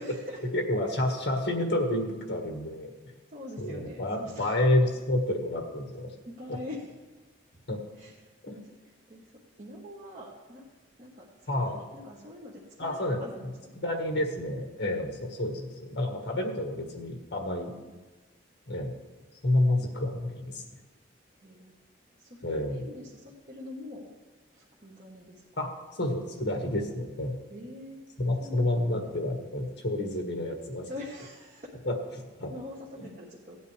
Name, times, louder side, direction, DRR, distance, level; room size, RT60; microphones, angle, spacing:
voice 1, 0.0-0.4 3.3-4.6 6.2-6.9 8.0-9.3 9.6-10.6 11.0-13.9 16.1-16.2 21.4-21.7 22.2-24.1 24.5-25.4 27.5-28.0 28.4-28.8 30.8-31.7 32.5-33.6, left 1 dB, 40° right, -4 dB, 1.3 m, -44 dB
voice 2, 0.5-2.9 3.6-6.1 6.5-6.6 7.7-7.8 8.4-8.6 11.5-11.8 12.8-13.2 13.8-17.7 18.7-18.9 19.4-20.6 22.4-22.8 25.6-25.7 26.0-27.3 28.2-30.9 31.8-31.9 32.4-32.5, left 1 dB, 60° left, 2 dB, 1.6 m, -29 dB
16.5 x 9.3 x 3.3 m, 1.2 s
head